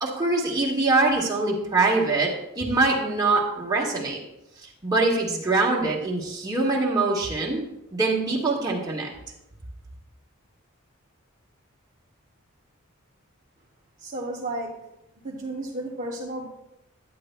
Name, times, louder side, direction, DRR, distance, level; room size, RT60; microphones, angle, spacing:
voice 1, 0.0-4.2 4.8-7.6 7.9-9.1, right 3 dB, 20° right, -4 dB, 1.5 m, -23 dB
voice 2, 14.0-14.7 15.2-16.5, right 1 dB, 35° right, -5 dB, 0.9 m, -32 dB
10.5 x 9.0 x 2.2 m, 0.86 s
head